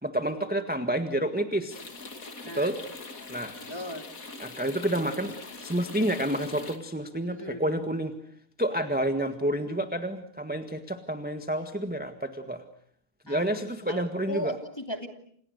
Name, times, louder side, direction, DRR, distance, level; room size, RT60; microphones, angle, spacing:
voice 1, 0.0-1.8 2.5-2.8 3.3-3.6 4.4-5.3 5.6-8.1 8.6-12.6 13.3-14.5, right 1 dB, 5° right, 7 dB, 1.4 m, -29 dB
sound 1, 1.7-6.8, left 3 dB, 40° left, 2.8 m, -42 dB
voice 2, 3.7-4.1 7.3-7.7 13.3-13.6 13.9-15.1, left 1 dB, 10° left, 5 dB, 2.6 m, -37 dB
29.5 x 28.5 x 6.6 m, 0.63 s
omnidirectional pair, 2.3 m